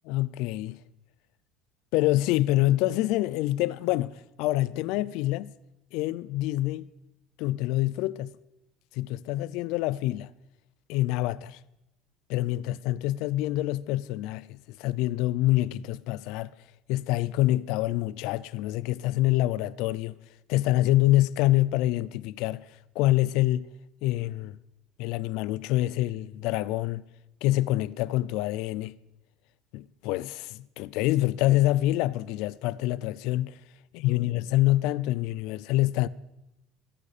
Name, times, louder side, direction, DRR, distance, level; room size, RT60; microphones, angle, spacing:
voice 1, 0.1-0.8 1.9-5.5 5.9-6.9 7.4-8.3 8.9-10.3 10.9-11.6 12.3-16.5 16.9-20.2 20.5-22.6 22.9-23.7 24.0-24.6 25.0-27.0 27.4-28.9 29.7-33.6 33.9-36.1, left 16 dB, 70° left, 0.5 m, -26 dB
23.0 x 10.0 x 4.2 m
cardioid pair, 155°, 0 cm